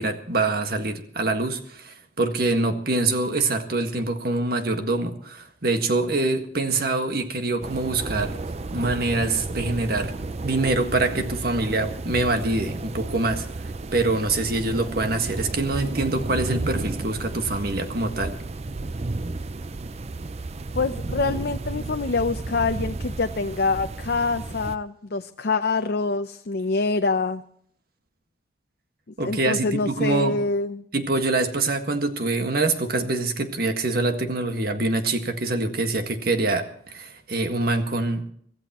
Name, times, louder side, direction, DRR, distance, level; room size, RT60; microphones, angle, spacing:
voice 1, 0.0-8.4 8.7-10.2 10.4-18.3 29.2-30.4 30.9-38.3, right 2 dB, 55° right, 6 dB, 1.7 m, -25 dB
sound 1, 7.6-24.8, right 2 dB, 35° right, 0.5 m, -32 dB
voice 2, 20.8-27.4 29.2-30.9, left 3 dB, 60° left, 8 dB, 0.6 m, -25 dB
25.0 x 14.5 x 3.0 m, 0.63 s
head